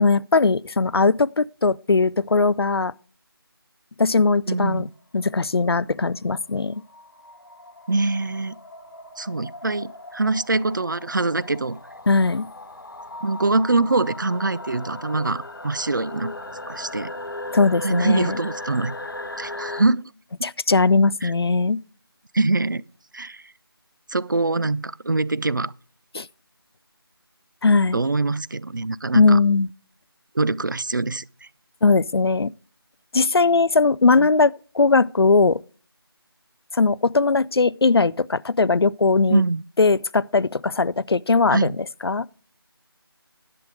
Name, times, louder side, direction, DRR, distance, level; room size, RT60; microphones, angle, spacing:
voice 1, 0.0-2.9 4.0-4.9 5.1-6.8 12.1-12.5 17.5-18.4 20.4-21.8 26.1-26.3 27.6-28.0 29.1-29.7 31.8-32.5 33.1-35.6 36.7-39.4 39.8-42.3, left 4 dB, 75° left, 0.4 m, -19 dB
voice 2, 4.5-4.9 7.9-8.6 9.2-11.8 13.2-16.3 16.7-17.1 17.8-18.9 19.4-20.1 20.4-20.5 21.2-21.3 22.3-22.8 23.1-23.4 24.1-25.7 27.9-29.4 30.3-31.5 39.3-39.6 41.5-41.8, right 3 dB, 50° right, 0.4 m, -24 dB
sound 1, 4.9-19.9, left 2 dB, 60° left, 1.2 m, -37 dB
10.5 x 7.7 x 4.8 m
figure-of-eight pair, 170°, 13 cm